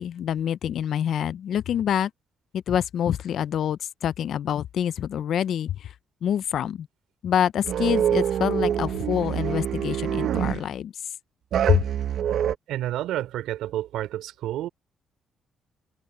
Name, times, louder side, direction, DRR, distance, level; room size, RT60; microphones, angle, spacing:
voice 1, 0.0-2.1 2.5-5.9 6.2-6.9 7.2-10.9 11.7-11.8, left 9 dB, 65° left, 0.5 m, -26 dB
sound 1, 7.6-10.7 11.5-12.6, right 9 dB, 70° right, 1.2 m, -25 dB
voice 2, 12.7-14.7, right 13 dB, 90° right, 3.2 m, -30 dB
cardioid pair, 90°, 0 cm